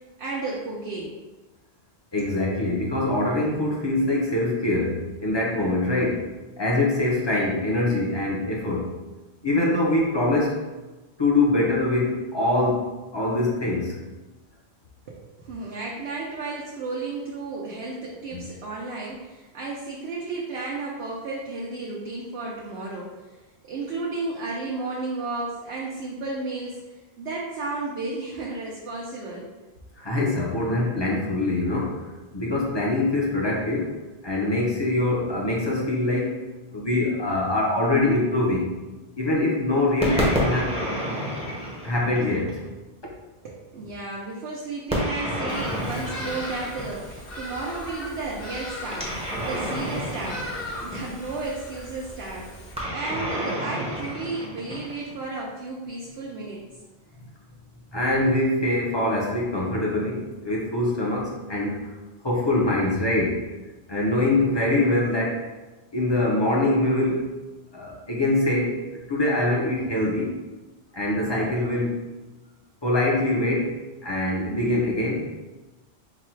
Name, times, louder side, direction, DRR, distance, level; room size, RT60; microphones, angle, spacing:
voice 1, 0.2-1.2 2.2-2.3 15.1-23.4 23.7-29.5 43.4-49.1 49.4-50.5 50.8-52.5 52.9-56.7, right 3 dB, 70° right, -4 dB, 0.9 m, -33 dB
voice 2, 2.1-6.3 6.6-8.9 9.4-10.6 11.2-14.0 18.3-18.4 30.0-32.0 32.3-33.9 34.2-36.4 36.7-38.7 39.2-40.7 41.8-42.6 48.8-49.0 57.9-61.9 62.2-63.5 63.9-65.4 65.9-67.3 67.7-68.8 69.1-70.3 70.9-72.0 72.8-73.7 74.0-75.3, left 2 dB, 30° left, -3 dB, 0.7 m, -24 dB
sound 1, 40.0-42.7 44.9-47.3 48.9-51.4 52.8-55.2, equal, 5° right, 0.7 m, -29 dB
Bird vocalization bird call bird song, 45.5-52.7, left 1 dB, 60° left, 1.2 m, -38 dB
4.0 x 2.3 x 4.4 m, 1.1 s
omnidirectional pair, 1.1 m